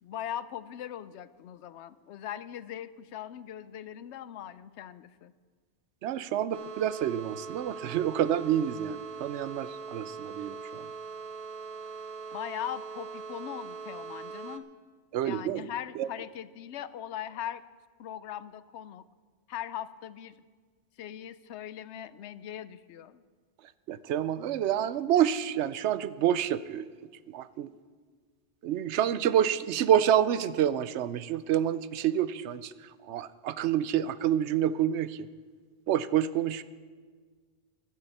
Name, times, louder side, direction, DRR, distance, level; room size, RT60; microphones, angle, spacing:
voice 1, 0.0-5.3 12.3-14.7 15.2-17.6 18.0-19.0 19.5-20.3 21.0-23.2, left 10 dB, 85° left, 15 dB, 0.9 m, -40 dB
voice 2, 6.0-10.9 15.1-15.7 16.0-16.1 23.9-26.9 27.3-27.7 28.6-35.3 35.9-36.6, right 10 dB, 90° right, 16 dB, 0.9 m, -28 dB
sound 1, 6.5-14.6, right 5 dB, 40° right, 0.7 m, -41 dB
15.5 x 12.5 x 4.2 m, 1.5 s
omnidirectional pair, 1.1 m